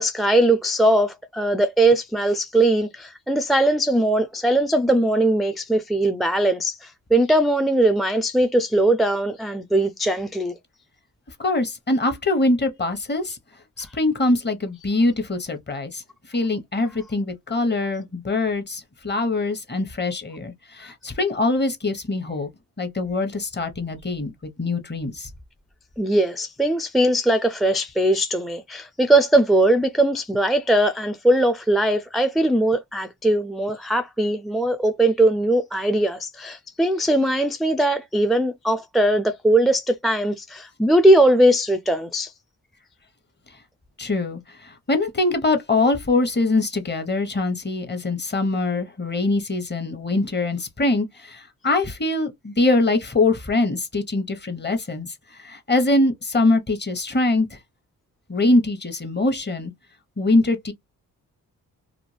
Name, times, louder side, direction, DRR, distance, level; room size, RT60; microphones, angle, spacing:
voice 1, 0.0-10.5 26.0-42.3, right 1 dB, ahead, 0.3 m, -20 dB
voice 2, 11.4-13.4 13.8-16.0 16.3-22.5 22.8-24.3 24.6-25.3 44.0-57.5 58.3-59.7 60.2-60.7, left 2 dB, 25° left, 1.0 m, -23 dB
2.4 x 2.2 x 3.2 m
supercardioid pair, 55°, 38 cm